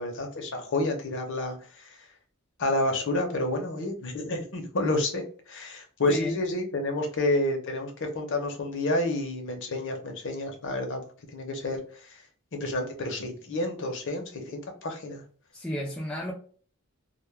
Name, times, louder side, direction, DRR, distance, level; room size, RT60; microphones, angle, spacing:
voice 1, 0.0-2.0 2.6-11.0 11.3-11.8 12.5-15.2, left 2 dB, 55° left, 3 dB, 0.7 m, -29 dB
voice 2, 15.5-16.3, left 1 dB, 5° left, -3 dB, 0.4 m, -32 dB
2.2 x 2.1 x 3.1 m, 0.43 s
head